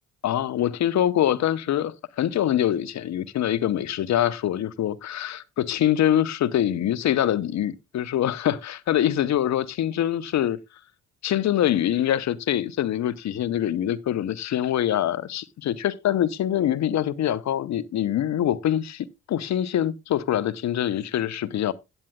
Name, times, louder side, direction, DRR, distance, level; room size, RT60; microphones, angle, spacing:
voice 1, 0.2-10.6 11.2-21.7, left 11 dB, 40° left, 0.8 m, -24 dB
16.0 x 8.9 x 2.3 m
figure-of-eight pair, 50°, 42 cm